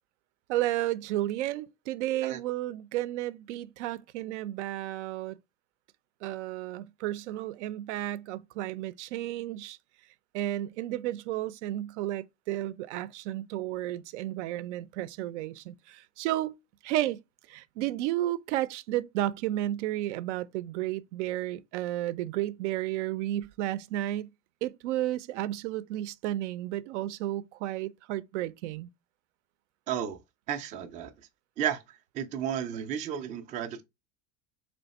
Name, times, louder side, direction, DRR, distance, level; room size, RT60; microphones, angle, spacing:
voice 1, 0.5-5.4 6.2-9.8 10.3-16.6 16.8-17.2 17.5-24.3 24.6-28.9, right 14 dB, 80° right, 0.5 m, -32 dB
voice 2, 29.9-30.2 30.5-31.1 31.6-33.8, right 9 dB, 25° right, 0.3 m, -33 dB
3.4 x 3.1 x 4.0 m
supercardioid pair, 150°, 35 cm